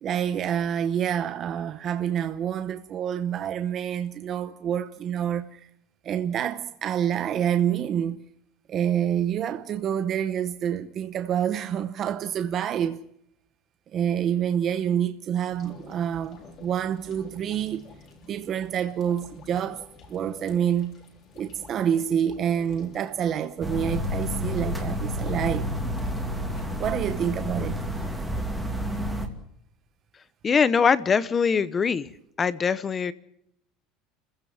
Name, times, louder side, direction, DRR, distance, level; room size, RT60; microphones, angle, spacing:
voice 1, 0.0-5.6 6.0-8.2 8.7-13.0 13.9-17.8 18.3-21.0 21.4-25.7 26.8-27.9, right 9 dB, 30° right, 0.9 m, -27 dB
sound 1, 15.5-29.0, left 4 dB, 35° left, 4.0 m, -49 dB
sound 2, 23.6-29.3, equal, ahead, 2.4 m, -30 dB
voice 2, 30.4-32.1 32.4-33.1, left 6 dB, 20° left, 0.8 m, -22 dB
30.0 x 16.0 x 7.2 m
cardioid pair, 170°, 0 cm